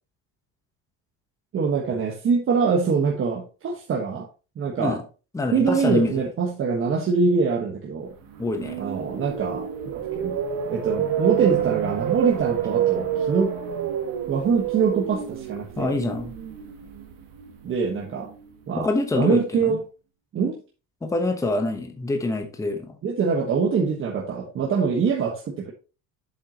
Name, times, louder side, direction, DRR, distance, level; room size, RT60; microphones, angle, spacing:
voice 1, 1.5-4.3 4.6-5.0 5.5-8.1 8.8-10.4 10.7-13.5 14.3-15.9 17.6-18.3 18.7-18.9 19.1-19.8 20.3-20.6 23.0-25.7, right 5 dB, 35° right, 0 dB, 1.4 m, -24 dB
voice 2, 5.3-6.1 8.4-8.8 15.8-16.3 18.8-19.8 21.0-23.0, left 2 dB, 10° left, 5 dB, 1.0 m, -25 dB
sound 1, 8.2-18.3, right 9 dB, 60° right, 1.8 m, -28 dB
7.8 x 7.6 x 2.9 m, 0.32 s
cardioid pair, 170°, 38 cm